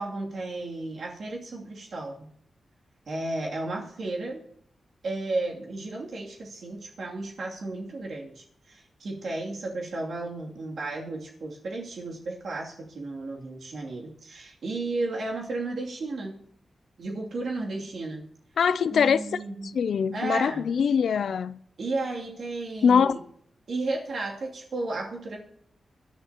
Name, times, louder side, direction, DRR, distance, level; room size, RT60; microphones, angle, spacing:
voice 1, 0.0-2.3 3.1-4.4 5.0-16.4 17.0-18.2 18.9-19.7 20.1-20.7 21.8-23.2 23.7-25.4, right 2 dB, 70° right, 2.7 m, -33 dB
voice 2, 18.6-19.4 19.7-21.6 22.8-23.2, left 6 dB, 80° left, 0.4 m, -23 dB
25.0 x 10.5 x 2.9 m
wide cardioid pair, 100°, 0 cm